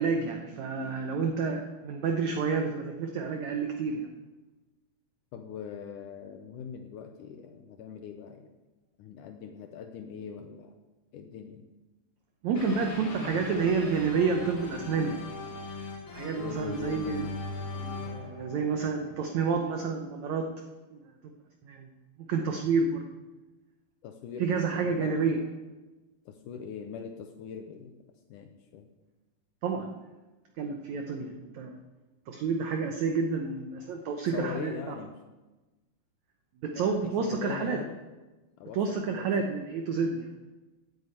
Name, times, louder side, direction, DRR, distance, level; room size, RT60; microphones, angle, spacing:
voice 1, 0.0-4.1 12.4-15.2 15.7-17.2 17.7-20.5 20.9-21.0 21.6-21.9 22.2-23.1 24.4-25.4 29.6-30.0 30.6-31.8 32.3-35.0 36.6-37.8 38.7-40.3, right 5 dB, 75° right, 4 dB, 1.7 m, -29 dB
voice 2, 5.3-8.5 9.0-10.7 11.1-11.6 16.3-17.4 24.0-25.2 26.3-28.0 28.3-28.9 34.3-35.2 36.8-38.0 38.6-39.3, left 7 dB, 75° left, 5 dB, 2.0 m, -41 dB
sound 1, 12.6-19.5, left 3 dB, 40° left, 2.3 m, -40 dB
9.8 x 8.7 x 8.4 m, 1.1 s
omnidirectional pair, 4.3 m